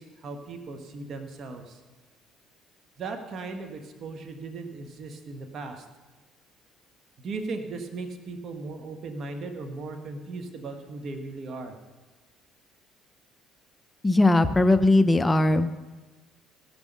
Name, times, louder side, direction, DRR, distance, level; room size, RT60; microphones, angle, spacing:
voice 1, 0.0-1.8 3.0-5.9 7.2-11.8, right 3 dB, 50° right, 5 dB, 1.3 m, -37 dB
voice 2, 14.0-15.7, left 2 dB, 15° left, 11 dB, 0.6 m, -19 dB
16.0 x 6.1 x 5.3 m, 1.2 s
supercardioid pair, 75°, 0 cm